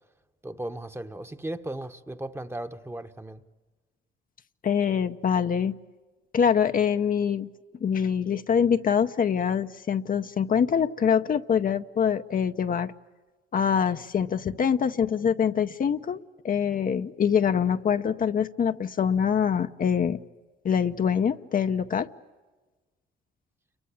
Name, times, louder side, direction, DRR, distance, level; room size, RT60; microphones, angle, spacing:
voice 1, 0.4-3.4, right 1 dB, 10° right, 1.1 m, -36 dB
voice 2, 4.6-5.8 6.3-7.5 7.8-12.9 13.5-20.2 20.6-22.1, left 7 dB, 45° left, 0.8 m, -24 dB
29.0 x 23.0 x 8.5 m
cardioid pair, 90°, 20 cm